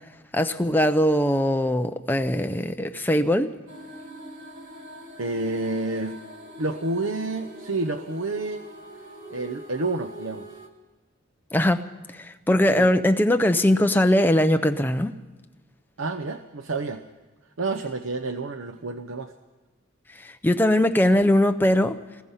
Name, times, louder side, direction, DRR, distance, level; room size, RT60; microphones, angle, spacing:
voice 1, 0.3-3.5 11.5-11.8 12.2-15.1 20.4-22.0, left 1 dB, 10° left, 6 dB, 0.7 m, -20 dB
sound 1, 3.7-10.7, equal, 40° right, 2.2 m, -43 dB
voice 2, 5.2-6.2 6.6-8.6 9.3-10.5 12.7-12.9 16.0-17.0 17.6-19.3, right 3 dB, 80° right, 6 dB, 0.8 m, -29 dB
28.0 x 20.5 x 5.7 m, 1.2 s
head